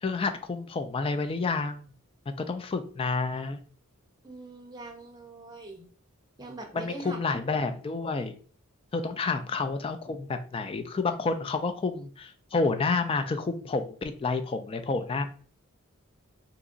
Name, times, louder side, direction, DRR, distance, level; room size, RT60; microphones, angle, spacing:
voice 1, 0.0-1.9 2.4-3.6 6.7-8.3 8.9-15.3, left 4 dB, 25° left, 8 dB, 0.3 m, -29 dB
voice 2, 4.2-5.8 6.4-7.2, right 2 dB, 20° right, 2 dB, 0.7 m, -42 dB
2.8 x 2.5 x 3.7 m, 0.42 s
head